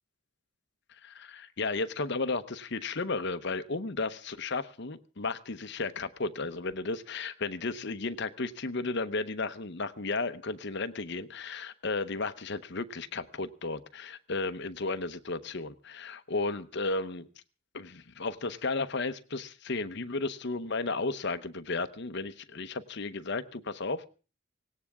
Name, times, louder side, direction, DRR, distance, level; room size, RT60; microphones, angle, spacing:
voice 1, 1.0-17.3 17.7-24.1, left 3 dB, 55° left, 11 dB, 0.9 m, -34 dB
18.5 x 17.0 x 3.6 m, 0.36 s
head